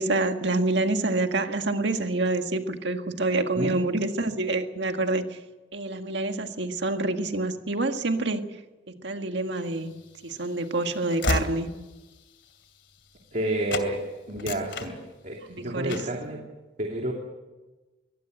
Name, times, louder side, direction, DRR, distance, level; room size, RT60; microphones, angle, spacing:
voice 1, 0.0-5.2 5.7-8.4 9.0-9.9 10.2-11.7 15.5-16.1, right 2 dB, 70° right, 6 dB, 1.8 m, -27 dB
Train / Slam, 9.8-13.4 13.7-13.9 14.3-15.5 15.9-16.2, left 2 dB, 70° left, 2.6 m, -33 dB
voice 2, 13.3-14.0 14.3-15.0 15.2-16.4 16.8-17.1, right 1 dB, 45° right, 0 dB, 2.7 m, -30 dB
23.0 x 18.5 x 8.0 m, 1.1 s
head